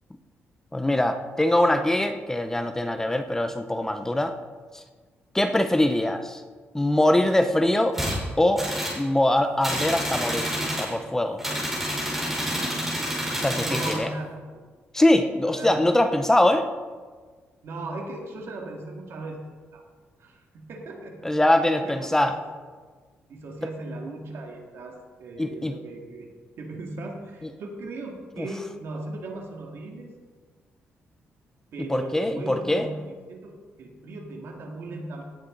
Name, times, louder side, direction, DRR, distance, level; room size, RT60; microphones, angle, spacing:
voice 1, 0.7-4.4 4.7-4.8 5.3-6.4 6.7-8.0 8.4-8.7 9.0-11.4 13.4-14.1 14.9-16.7 21.2-22.4 25.4-25.7 28.4-28.5 31.8-32.9, left 1 dB, 10° left, 8 dB, 0.6 m, -23 dB
sound 1, 7.9-8.2 8.6-9.0 9.6-10.9 11.4-14.0, equal, 5° right, 4.4 m, -28 dB
voice 2, 13.6-14.4 15.4-15.7 17.6-19.4 19.7-19.8 20.2-21.4 21.7-22.3 23.3-26.3 26.6-30.1 31.7-35.2, right 2 dB, 65° right, 2 dB, 2.2 m, -37 dB
17.5 x 8.6 x 3.9 m, 1.5 s
cardioid pair, 130°, 4 cm